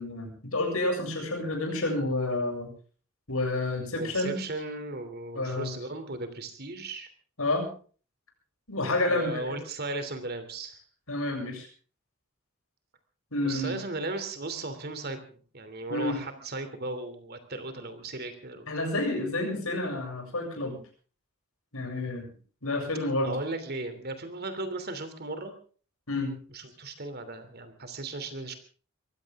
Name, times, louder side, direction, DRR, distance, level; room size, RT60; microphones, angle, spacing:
voice 1, 0.0-2.7 3.3-4.4 5.3-5.7 7.4-7.7 8.7-9.6 11.1-11.7 13.3-13.7 15.9-16.2 18.7-20.8 21.7-22.2 22.6-23.4 26.1-26.3, left 2 dB, 80° left, 3 dB, 7.4 m, -29 dB
voice 2, 3.9-7.1 9.1-10.8 13.4-18.9 23.2-25.5 26.5-28.6, right 2 dB, 50° right, 9 dB, 3.0 m, -36 dB
23.5 x 16.0 x 3.7 m, 0.41 s
head